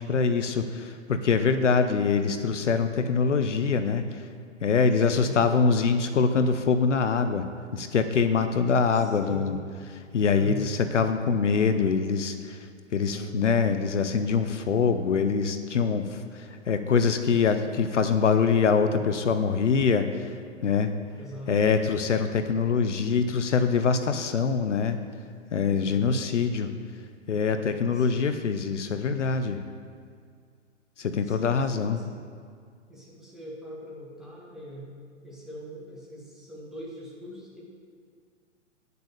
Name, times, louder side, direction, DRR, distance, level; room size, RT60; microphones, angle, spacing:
voice 1, 0.0-4.2 4.6-7.5 7.7-9.6 9.9-20.3 20.6-20.9 21.5-25.0 25.5-26.7 27.3-29.6 31.0-32.0, left 5 dB, 75° left, 9 dB, 0.8 m, -24 dB
voice 2, 5.2-5.5 9.0-9.6 10.3-10.7 21.2-21.6 25.7-26.1 27.9-28.3 31.2-32.2 32.9-34.9 35.2-37.6, equal, ahead, -6 dB, 2.1 m, -42 dB
Bass guitar, 13.1-19.4, right 6 dB, 20° right, 0.6 m, -47 dB
10.0 x 6.7 x 6.6 m, 2.1 s
figure-of-eight pair, 115°, 37 cm